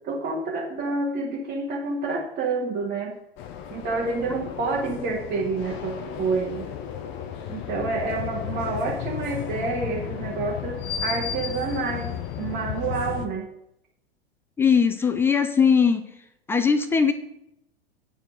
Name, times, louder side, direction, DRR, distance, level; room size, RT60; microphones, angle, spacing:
voice 1, 0.0-3.2 3.7-6.7 7.5-13.5, right 3 dB, 25° right, -4 dB, 1.6 m, -28 dB
sound 1, 3.4-13.3, left 9 dB, 35° left, 1.0 m, -33 dB
voice 2, 14.6-16.0 16.5-17.1, left 6 dB, 10° left, 10 dB, 0.3 m, -20 dB
8.9 x 4.5 x 7.6 m, 0.82 s
figure-of-eight pair, 95°, 31 cm